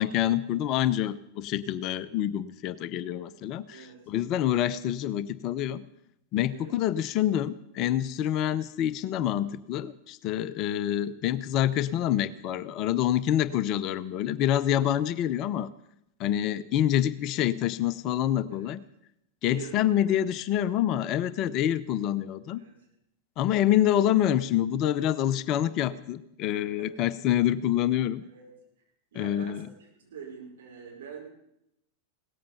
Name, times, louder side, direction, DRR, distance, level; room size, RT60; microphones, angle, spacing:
voice 1, 0.0-3.8 4.1-5.8 6.3-15.7 16.2-18.8 19.4-22.6 23.4-28.2 29.2-29.7, left 11 dB, 40° left, 16 dB, 0.6 m, -27 dB
voice 2, 3.7-4.0 6.5-6.7 18.5-18.8 19.4-20.2 22.5-22.9 26.5-26.9 28.2-28.5 29.1-31.2, right 6 dB, 60° right, 0 dB, 5.1 m, -45 dB
17.5 x 14.0 x 5.6 m, 0.79 s
figure-of-eight pair, 90°, 0 cm